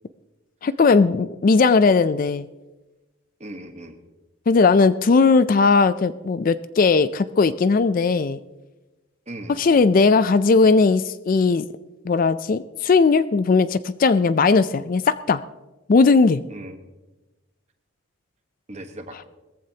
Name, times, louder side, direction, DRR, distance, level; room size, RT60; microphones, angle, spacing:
voice 1, 0.6-2.5 4.5-8.4 9.6-11.6 12.0-15.4 15.9-16.4, left 4 dB, 40° left, 14 dB, 0.3 m, -18 dB
voice 2, 3.4-4.0 9.3-9.7 16.5-16.8 18.7-19.2, right 1 dB, 30° right, 6 dB, 1.2 m, -38 dB
20.0 x 14.5 x 2.8 m, 1.1 s
head